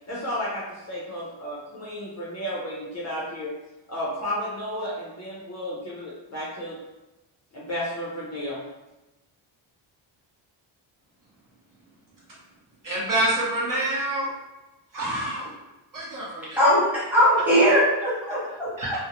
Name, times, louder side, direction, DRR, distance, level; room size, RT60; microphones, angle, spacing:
voice 1, 0.1-3.5 3.9-6.8 7.5-8.6, equal, 35° left, -6 dB, 0.5 m, -32 dB
voice 2, 12.8-14.3 14.9-15.5 15.9-16.6 18.8-19.0, right 1 dB, 40° right, -7 dB, 0.7 m, -27 dB
voice 3, 16.6-19.0, equal, 5° right, -10 dB, 1.0 m, -20 dB
2.5 x 2.0 x 2.9 m, 1.0 s
wide cardioid pair, 150°, 50 cm